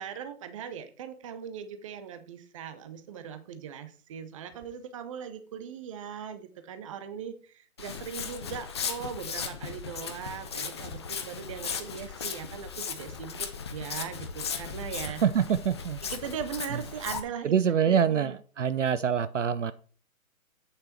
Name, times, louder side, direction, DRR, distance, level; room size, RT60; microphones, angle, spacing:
voice 1, 0.0-15.2 16.0-17.6 17.9-18.3, right 7 dB, 25° right, 10 dB, 0.8 m, -39 dB
Walk footsteps, 7.8-17.2, left 6 dB, 20° left, 0.5 m, -37 dB
voice 2, 15.2-16.0 16.7-16.8 17.4-19.7, right 8 dB, 60° right, 15 dB, 0.6 m, -25 dB
8.4 x 6.8 x 4.5 m, 0.42 s
figure-of-eight pair, 135°, 43 cm